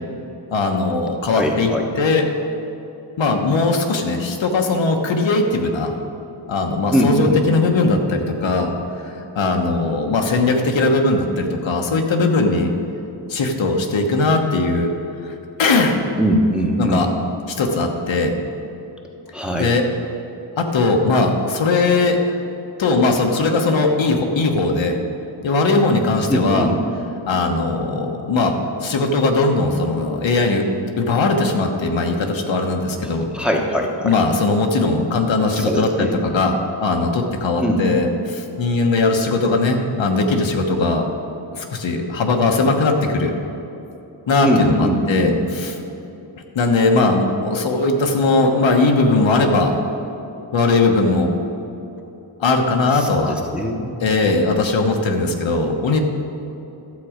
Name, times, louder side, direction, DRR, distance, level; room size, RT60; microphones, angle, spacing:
voice 1, 0.5-1.7 2.0-2.2 3.2-5.9 6.5-8.7 9.3-12.7 13.3-14.9 15.2-15.3 15.6-16.0 16.8-17.1 17.6-18.3 19.6-19.8 20.6-22.2 22.8-25.0 25.4-26.7 27.3-30.6 31.0-33.3 34.0-41.0 41.5-43.3 44.3-45.7 46.5-49.8 50.5-51.3 52.4-53.3 54.0-56.0, left 3 dB, 75° left, 3 dB, 1.2 m, -19 dB
voice 2, 1.3-1.8 6.9-7.4 16.2-17.1 19.3-19.7 26.3-26.8 33.0-34.2 35.6-36.2 37.6-37.9 44.4-45.3 52.9-54.1, equal, ahead, 0 dB, 1.0 m, -21 dB
12.0 x 7.5 x 5.0 m, 2.9 s
wide cardioid pair, 120°, 46 cm